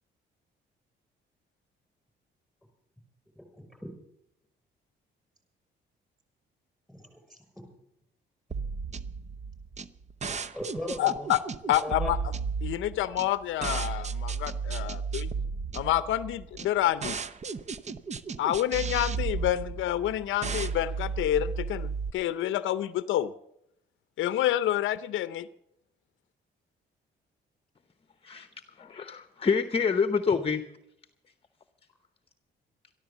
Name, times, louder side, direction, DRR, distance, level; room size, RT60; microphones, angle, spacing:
voice 1, 3.4-3.9 6.9-7.7 10.5-11.3 11.8-12.1, left 1 dB, ahead, 5 dB, 6.0 m, -39 dB
sound 1, 8.5-22.1, right 5 dB, 35° right, 0.7 m, -34 dB
voice 2, 11.0-11.4 11.7-12.2 12.6-15.3 15.7-17.2 18.4-23.3 24.2-25.5, left 13 dB, 80° left, 14 dB, 0.6 m, -28 dB
voice 3, 28.8-30.6, left 5 dB, 30° left, 9 dB, 0.9 m, -27 dB
13.5 x 12.0 x 7.1 m, 0.77 s
cardioid pair, 90°, 20 cm